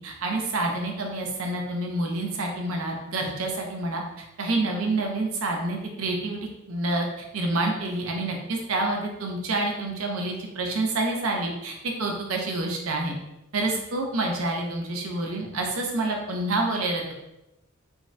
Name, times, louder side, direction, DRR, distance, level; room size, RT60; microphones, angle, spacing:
voice 1, 0.0-4.0 4.4-6.4 6.7-13.1 13.5-17.1, right 2 dB, 85° right, 1 dB, 0.6 m, -28 dB
3.5 x 2.1 x 2.6 m, 0.91 s
head